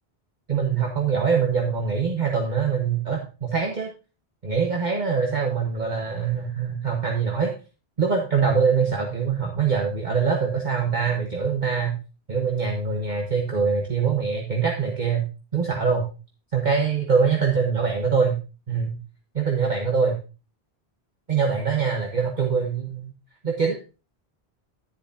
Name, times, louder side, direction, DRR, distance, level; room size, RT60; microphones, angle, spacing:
voice 1, 0.5-3.9 4.4-7.5 8.0-12.0 12.3-15.2 15.5-16.1 16.5-18.3 18.7-18.9 19.3-20.2 21.3-23.1 23.4-23.8, right 5 dB, 45° right, 1 dB, 1.4 m, -23 dB
10.5 x 10.5 x 2.8 m, 0.32 s
omnidirectional pair, 1.1 m